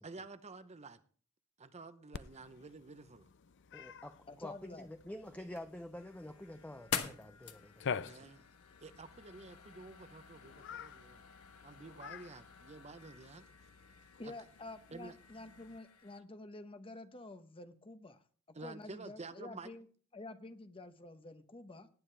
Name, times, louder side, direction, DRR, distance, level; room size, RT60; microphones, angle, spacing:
voice 1, 0.0-1.0 1.6-3.3 8.0-8.4 8.8-11.2 11.6-13.5 14.2-14.3 14.9-15.1 18.5-19.7, right 3 dB, 30° right, 0.8 m, -50 dB
Cat, 2.1-15.8, left 6 dB, 55° left, 0.5 m, -49 dB
voice 2, 3.7-8.3, left 1 dB, 5° left, 0.6 m, -48 dB
voice 3, 4.3-4.9 14.2-18.2 18.6-19.9 20.1-21.9, left 2 dB, 25° left, 0.9 m, -49 dB
sound 1, 5.2-16.2, left 7 dB, 90° left, 1.3 m, -48 dB
18.5 x 9.4 x 3.3 m
head